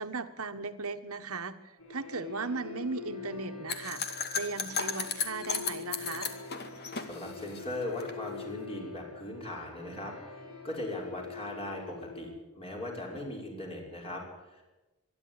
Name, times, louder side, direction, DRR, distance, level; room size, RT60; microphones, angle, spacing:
voice 1, 0.0-4.0 4.3-6.3, right 4 dB, 75° right, 9 dB, 1.5 m, -37 dB
sound 1, 1.8-12.3, left 5 dB, 75° left, 5.7 m, -45 dB
sound 2, 3.7-8.1, left 6 dB, 50° left, 2.2 m, -35 dB
voice 2, 7.0-10.4 10.6-14.6, left 1 dB, 25° left, 0 dB, 5.7 m, -39 dB
26.0 x 11.5 x 9.8 m, 1.1 s
head